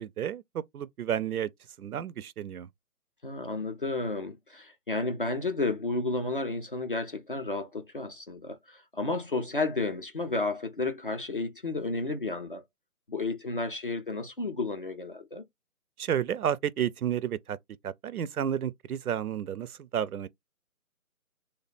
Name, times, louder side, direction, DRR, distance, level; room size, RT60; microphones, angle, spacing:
voice 1, 0.0-1.5 1.8-2.7 16.0-17.6 17.8-20.3, right 9 dB, 75° right, 0.5 m, -31 dB
voice 2, 3.2-12.6 13.1-15.4, left 3 dB, 40° left, 0.5 m, -32 dB
3.2 x 2.1 x 4.0 m
figure-of-eight pair, 150°, 45 cm